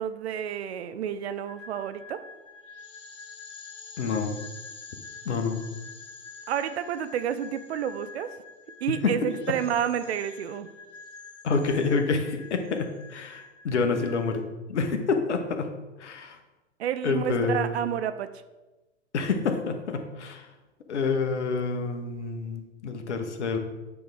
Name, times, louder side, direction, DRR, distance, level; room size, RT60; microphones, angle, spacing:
voice 1, 0.0-2.2 6.5-8.3 8.8-10.7 16.8-18.3, right 9 dB, 55° right, 12 dB, 0.6 m, -30 dB
sound 1, 1.4-14.4, left 4 dB, 35° left, 2.7 m, -46 dB
voice 2, 4.0-4.4 5.2-5.7 8.9-9.1 9.5-9.6 11.4-15.7 16.0-16.4 17.0-17.7 19.1-20.5 20.9-23.6, left 4 dB, 65° left, 6 dB, 1.2 m, -28 dB
8.5 x 3.5 x 6.1 m, 1.1 s
figure-of-eight pair, 105°, 37 cm